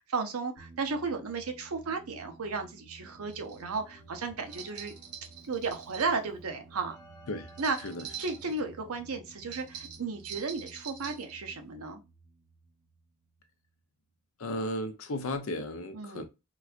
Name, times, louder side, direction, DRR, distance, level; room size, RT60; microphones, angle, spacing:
voice 1, 0.0-4.9 5.5-7.0 7.6-7.8 8.2-12.0 15.9-16.2, right 4 dB, 75° right, 0.6 m, -34 dB
sound 1, 0.6-13.8, right 3 dB, 45° right, 1.1 m, -55 dB
Keyboard (musical), 3.1-10.4, right 1 dB, 15° left, 0.7 m, -58 dB
sound 2, 3.3-3.6 4.5-6.2 7.5-8.6 9.5-11.3, right 9 dB, 90° right, 1.1 m, -44 dB
voice 2, 14.4-16.2, left 1 dB, 65° left, 0.6 m, -34 dB
4.0 x 2.2 x 2.4 m
head